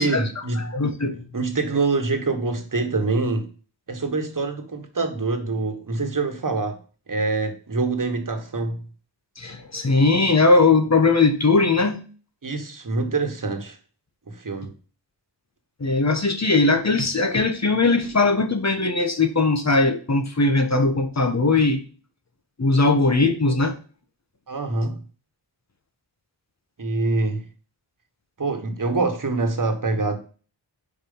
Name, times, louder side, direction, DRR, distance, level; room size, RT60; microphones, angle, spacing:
voice 1, 0.0-0.8 1.3-3.5 3.9-6.8 7.1-8.8 12.4-13.8 14.3-14.7 24.5-25.0 26.8-27.5 28.4-30.2, right 3 dB, 45° right, 1.5 m, -25 dB
voice 2, 0.6-1.2 9.4-12.0 15.8-21.8 22.6-23.8, left 3 dB, 35° left, 1.3 m, -19 dB
4.9 x 4.8 x 5.5 m
cardioid pair, 60°, 44 cm